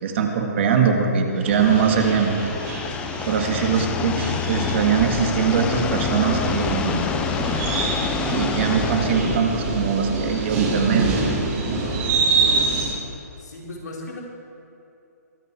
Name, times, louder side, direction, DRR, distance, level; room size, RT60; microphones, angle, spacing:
voice 1, 0.0-2.3 3.3-7.1 8.3-11.2, right 6 dB, 45° right, 3 dB, 1.8 m, -21 dB
sound 1, 1.4-9.4, left 7 dB, 10° left, 0.5 m, -28 dB
sound 2, 1.5-12.9, right 3 dB, 25° right, 3.1 m, -26 dB
voice 2, 13.4-14.2, left 2 dB, 80° left, -3 dB, 4.0 m, -36 dB
22.5 x 8.5 x 4.8 m, 2.7 s
hypercardioid pair, 160°, 9 cm